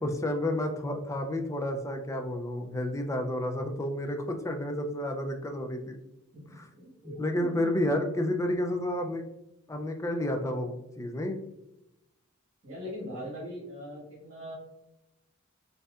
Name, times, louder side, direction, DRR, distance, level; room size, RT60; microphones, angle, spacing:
voice 1, 0.0-6.0 6.5-6.7 7.0-9.2 9.7-11.4, left 1 dB, 15° left, 4 dB, 0.3 m, -31 dB
voice 2, 6.3-7.8 12.6-14.5, equal, 40° right, -8 dB, 1.4 m, -41 dB
4.3 x 2.7 x 2.4 m, 0.89 s
head